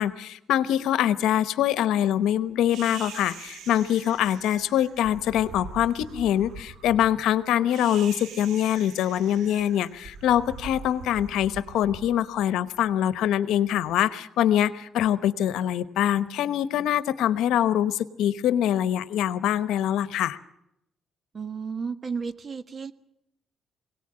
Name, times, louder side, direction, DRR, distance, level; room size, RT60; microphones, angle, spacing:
voice 1, 0.0-20.4, left 11 dB, 85° left, 14 dB, 1.0 m, -24 dB
sound 1, 2.7-13.0, right 5 dB, 80° right, 2.3 m, -43 dB
voice 2, 21.3-22.9, right 5 dB, 40° right, 11 dB, 1.5 m, -33 dB
22.5 x 18.0 x 8.8 m, 0.82 s
cardioid pair, 90°, 0 cm